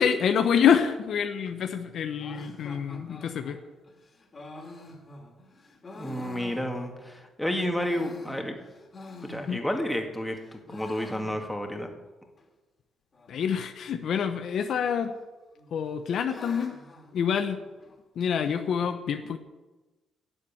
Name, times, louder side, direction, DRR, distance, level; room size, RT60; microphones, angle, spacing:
voice 1, 0.0-3.6 9.5-9.6 13.3-15.1 15.7-16.8 17.1-17.6 18.2-19.4, left 7 dB, 65° left, 7 dB, 0.9 m, -26 dB
sound 1, 2.2-7.2 7.6-10.0 10.3-11.8 12.1-12.2 12.4-12.5 13.1-13.6 14.6-15.2 15.6-18.0, left 2 dB, 35° left, 2.7 m, -46 dB
voice 2, 6.0-8.6 9.3-11.9, left 1 dB, 5° left, 3 dB, 2.2 m, -31 dB
11.0 x 7.4 x 8.9 m, 1.1 s
cardioid pair, 90°, 0 cm